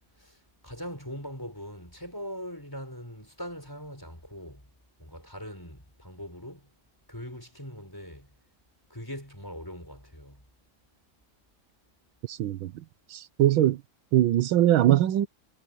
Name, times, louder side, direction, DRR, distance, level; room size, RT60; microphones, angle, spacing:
voice 1, 0.2-4.7 5.0-6.7 7.1-8.3 8.9-10.4, equal, 10° left, 5.5 m, -41 dB
voice 2, 12.3-12.7 13.1-13.8 14.1-15.3, right 12 dB, 85° right, 1.6 m, -22 dB
omnidirectional pair, 2.1 m